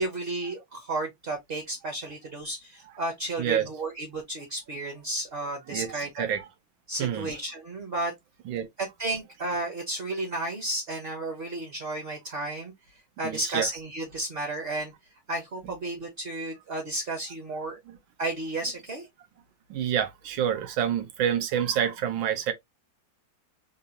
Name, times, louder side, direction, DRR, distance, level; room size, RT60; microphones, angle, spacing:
voice 1, 0.0-6.3 6.9-8.1 8.8-12.7 13.2-14.9 15.3-17.8 18.2-19.1, right 2 dB, 35° right, 1.0 m, -32 dB
voice 2, 3.4-3.7 5.7-6.5 7.0-7.3 8.5-8.7 13.2-13.7 17.9-18.0 19.7-22.5, right 9 dB, 75° right, 1.5 m, -28 dB
3.9 x 2.6 x 2.8 m
omnidirectional pair, 2.2 m